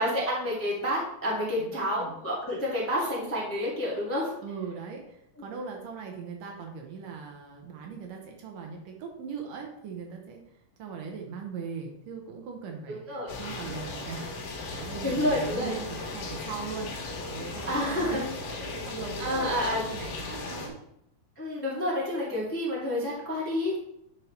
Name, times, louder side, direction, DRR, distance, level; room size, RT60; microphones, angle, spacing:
voice 1, 0.0-4.3 12.9-13.3 15.0-15.7 17.7-18.2 19.2-19.8 21.4-23.8, left 1 dB, 5° left, -6 dB, 1.3 m, -29 dB
voice 2, 1.6-2.1 4.4-10.4 10.8-14.4 14.7-18.2 18.6-20.8, right 5 dB, 75° right, 2 dB, 2.5 m, -40 dB
sound 1, 13.3-20.7, left 3 dB, 75° left, 2.8 m, -37 dB
9.7 x 4.7 x 3.2 m, 0.74 s
omnidirectional pair, 4.0 m